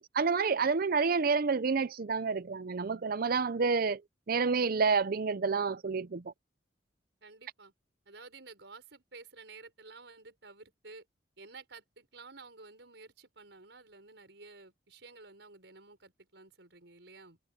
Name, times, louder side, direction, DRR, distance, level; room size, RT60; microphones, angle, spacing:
voice 1, 0.0-4.0 4.3-6.2, right 5 dB, 55° right, 0.6 m, -29 dB
voice 2, 7.2-7.7 8.1-11.0 11.4-17.4, right 3 dB, 70° right, 6.3 m, -52 dB
head